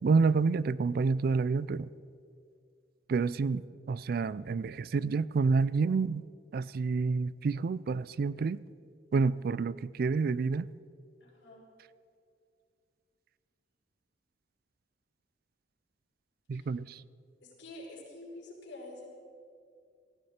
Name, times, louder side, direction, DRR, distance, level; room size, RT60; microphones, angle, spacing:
voice 1, 0.0-1.9 3.1-3.6 3.9-6.2 6.5-8.6 9.1-10.7 16.5-17.0, right 4 dB, 55° right, 19 dB, 0.3 m, -28 dB
voice 2, 11.2-11.6 16.5-16.7 17.6-19.1, left 2 dB, 80° left, -4 dB, 4.9 m, -47 dB
18.0 x 15.5 x 4.3 m, 2.4 s
head